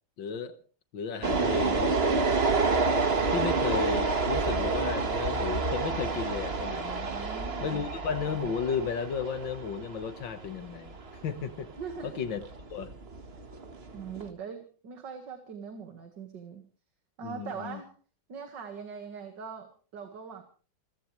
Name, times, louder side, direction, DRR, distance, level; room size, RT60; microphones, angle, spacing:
voice 1, 0.2-0.5 0.9-2.0 3.3-7.1 7.6-11.0 11.2-11.7 12.0-12.4 12.7-12.9 17.2-17.8, left 6 dB, 75° left, 10 dB, 2.2 m, -33 dB
sound 1, 1.2-14.3, right 4 dB, 35° right, 1.6 m, -29 dB
voice 2, 7.1-7.7 11.8-12.2 13.9-16.6 17.2-17.9 18.3-20.4, right 6 dB, 65° right, 5 dB, 2.4 m, -41 dB
28.0 x 15.5 x 3.3 m, 0.39 s
omnidirectional pair, 2.1 m